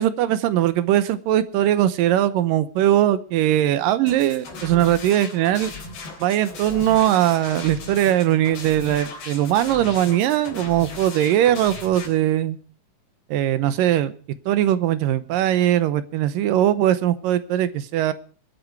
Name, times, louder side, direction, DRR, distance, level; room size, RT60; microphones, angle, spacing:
voice 1, 0.0-5.7 6.2-12.6 13.3-14.1 14.5-18.1, right 12 dB, 75° right, 14 dB, 2.2 m, -20 dB
sound 1, 4.1-12.1, left 3 dB, 75° left, 5.7 m, -37 dB
24.0 x 9.2 x 4.6 m, 0.40 s
omnidirectional pair, 4.6 m